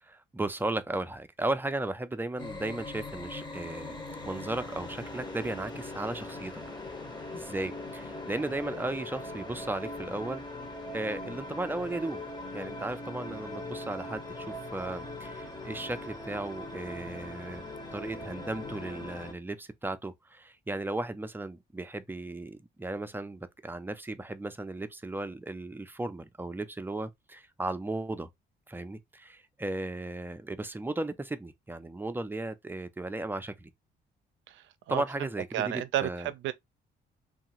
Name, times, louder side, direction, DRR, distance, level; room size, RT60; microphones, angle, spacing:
voice 1, 0.0-4.0 4.2-6.6 7.3-10.4 10.9-12.2 12.5-28.3 28.7-33.7 34.9-36.3, right 2 dB, 10° right, 0.4 m, -35 dB
sound 1, 2.4-19.3, left 2 dB, 20° left, 0.8 m, -40 dB
voice 2, 34.5-35.3 35.5-36.5, right 12 dB, 75° right, 0.5 m, -32 dB
2.9 x 2.4 x 2.8 m
cardioid pair, 90°, 20 cm